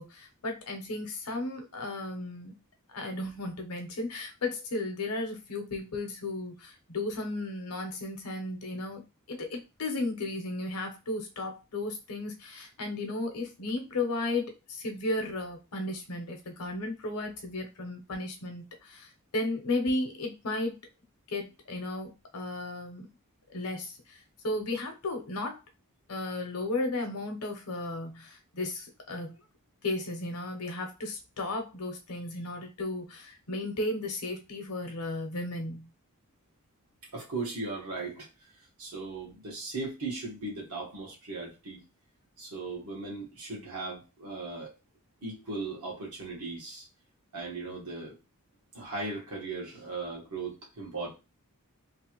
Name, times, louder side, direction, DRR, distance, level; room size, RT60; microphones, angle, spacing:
voice 1, 0.0-2.5 2.9-9.0 9.3-20.8 21.3-23.1 23.5-24.2 24.4-25.6 26.1-29.4 29.8-35.9, left 2 dB, 85° left, 4 dB, 0.8 m, -34 dB
voice 2, 37.1-38.3 38.8-41.8 42.4-44.7 45.2-46.9 47.3-48.1 48.7-51.1, right 3 dB, 80° right, -2 dB, 1.4 m, -37 dB
3.2 x 2.5 x 3.0 m, 0.27 s
head